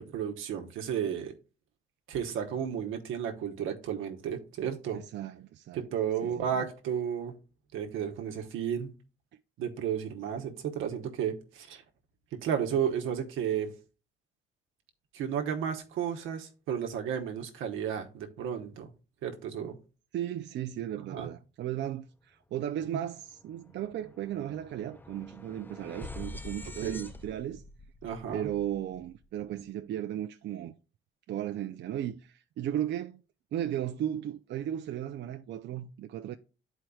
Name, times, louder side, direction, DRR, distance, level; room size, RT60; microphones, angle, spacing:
voice 1, 0.0-1.3 2.1-5.0 5.7-7.3 7.7-8.9 9.6-11.8 12.3-13.7 15.1-18.9 19.2-19.8 21.1-21.3 22.9-23.0 26.8-27.0 28.0-28.5, right 8 dB, 85° right, 1.0 m, -33 dB
voice 2, 4.9-5.8 6.2-6.7 20.1-27.6 28.3-30.7 31.3-33.2 33.5-36.4, right 11 dB, 65° right, 0.4 m, -35 dB
sound 1, 22.9-23.0 23.3-29.5, left 2 dB, 10° left, 0.3 m, -47 dB
11.5 x 4.5 x 2.3 m
cardioid pair, 90°, 20 cm